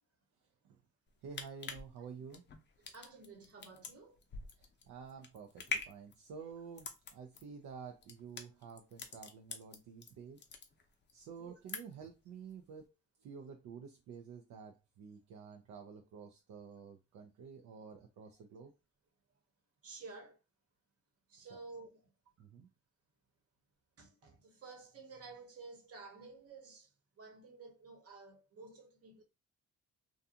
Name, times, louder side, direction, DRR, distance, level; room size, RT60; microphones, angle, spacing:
sound 1, 1.1-10.1 10.4-11.1 11.4-12.1 12.5-12.6, left 5 dB, 35° left, 0.5 m, -44 dB
voice 1, 1.2-2.5 4.6-10.4 11.1-12.9 13.2-18.7 21.4-21.6 22.4-22.7, right 6 dB, 70° right, 0.5 m, -50 dB
voice 2, 2.9-4.2 11.4-11.5 19.8-20.4 21.3-22.1 24.0-29.2, right 4 dB, 50° right, 1.0 m, -52 dB
2.5 x 2.3 x 2.7 m
cardioid pair, 90°, 30 cm